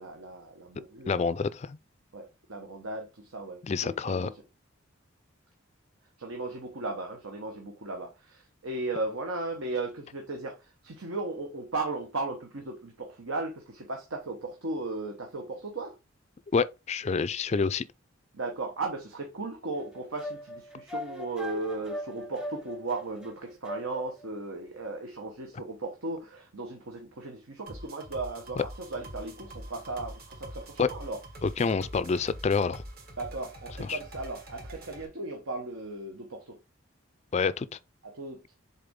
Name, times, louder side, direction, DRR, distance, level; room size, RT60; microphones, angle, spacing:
voice 1, 0.0-1.3 2.1-4.4 6.2-15.9 18.3-31.2 33.2-36.6 38.0-38.4, right 2 dB, 80° right, 1.2 m, -36 dB
voice 2, 1.1-1.8 3.6-4.3 16.5-17.8 28.6-28.7 30.8-30.9 31.4-32.8 33.8-34.0 37.3-37.7, left 5 dB, 30° left, 0.3 m, -27 dB
sound 1, 19.7-24.3, equal, 5° right, 0.6 m, -40 dB
sound 2, 27.7-35.0, right 1 dB, 45° right, 1.6 m, -45 dB
6.8 x 4.2 x 3.6 m
head